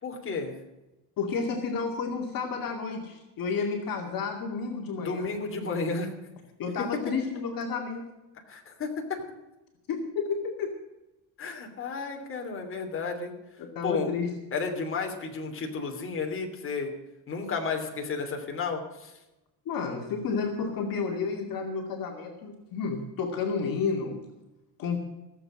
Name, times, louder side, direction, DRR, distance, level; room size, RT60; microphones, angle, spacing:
voice 1, 0.0-0.5 5.0-6.1 8.5-9.2 11.4-13.3 13.8-14.1 14.5-16.9 17.3-19.1, left 4 dB, 30° left, 2 dB, 2.9 m, -32 dB
voice 2, 1.2-5.3 6.6-8.1 9.9-10.7 13.6-14.3 19.7-24.2 24.8-25.0, left 5 dB, 50° left, 1 dB, 2.4 m, -31 dB
16.5 x 7.8 x 7.8 m, 0.99 s
cardioid pair, 135°, 42 cm